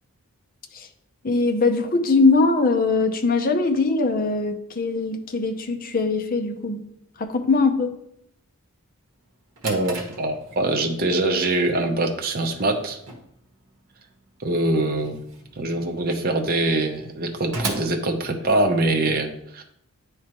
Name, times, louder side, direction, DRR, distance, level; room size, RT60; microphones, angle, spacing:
voice 1, 1.2-6.8 7.2-7.9, left 3 dB, 40° left, 6 dB, 0.6 m, -21 dB
Drawer open or close, 9.2-19.0, right 2 dB, 60° right, 1.1 m, -38 dB
voice 2, 9.6-13.0 14.4-15.2 15.6-19.6, right 2 dB, 40° right, 4 dB, 0.7 m, -23 dB
9.6 x 3.3 x 3.0 m, 0.74 s
head